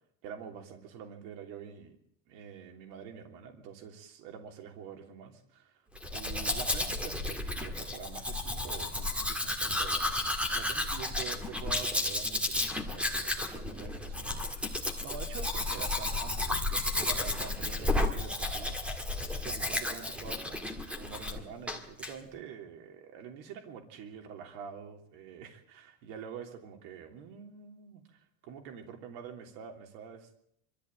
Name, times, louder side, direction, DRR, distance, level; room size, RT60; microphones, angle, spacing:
voice 1, 0.2-2.0 2.3-5.7 6.1-14.7 15.0-30.3, right 7 dB, 65° right, 4 dB, 3.4 m, -46 dB
Domestic sounds home sounds, 6.0-21.4 21.7-22.1, left 2 dB, 5° right, 1.8 m, -32 dB
24.5 x 13.5 x 8.9 m, 0.70 s
cardioid pair, 170°, 46 cm